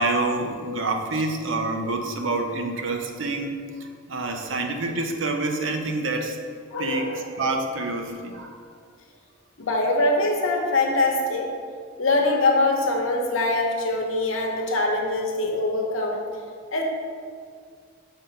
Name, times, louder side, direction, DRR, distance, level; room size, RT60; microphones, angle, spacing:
voice 1, 0.0-6.4 6.8-8.6, right 2 dB, 70° right, 4 dB, 0.7 m, -27 dB
voice 2, 6.7-7.3 9.6-11.5 12.0-16.2 16.7-16.8, left 2 dB, 85° left, 1 dB, 1.0 m, -23 dB
6.0 x 4.0 x 5.3 m, 2.1 s
head